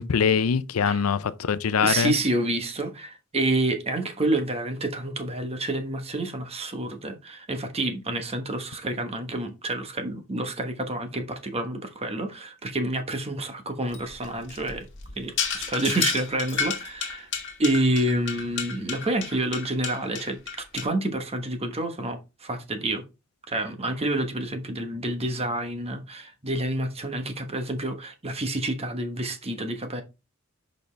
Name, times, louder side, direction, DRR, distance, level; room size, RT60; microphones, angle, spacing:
voice 1, 0.0-2.1, left 6 dB, 85° left, 0.5 m, -23 dB
voice 2, 1.8-14.9 15.2-17.3 17.6-20.4 20.7-23.0 23.5-30.0, right 1 dB, 30° right, 1.2 m, -28 dB
sound 1, 13.9-20.8, left 6 dB, 60° left, 1.8 m, -31 dB
6.5 x 5.4 x 3.3 m
head